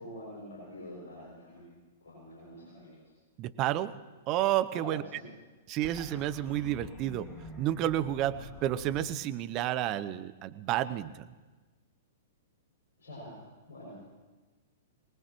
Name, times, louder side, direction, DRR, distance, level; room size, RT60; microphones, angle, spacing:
voice 1, 0.0-1.7 2.0-3.0 4.7-5.3 13.0-13.4 13.7-14.0, equal, 60° left, -6 dB, 6.5 m, -46 dB
voice 2, 3.4-4.0 4.3-5.0 5.7-11.3, right 13 dB, 35° right, 13 dB, 0.7 m, -31 dB
sound 1, 5.8-9.0, left 1 dB, 15° left, 2.0 m, -47 dB
24.0 x 19.0 x 3.1 m, 1.3 s
figure-of-eight pair, 105°, 0 cm